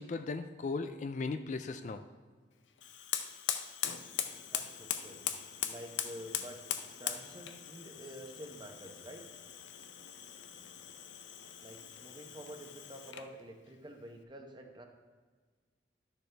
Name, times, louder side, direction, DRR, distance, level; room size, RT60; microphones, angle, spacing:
voice 1, 0.0-2.0, left 3 dB, 40° left, 9 dB, 0.4 m, -37 dB
Fire, 2.8-13.4, left 10 dB, 85° left, 0.6 m, -40 dB
voice 2, 4.2-5.2 5.6-6.6 7.0-9.2 11.6-14.9, right 1 dB, 25° right, 4 dB, 0.8 m, -49 dB
12.0 x 6.6 x 3.4 m, 1.5 s
head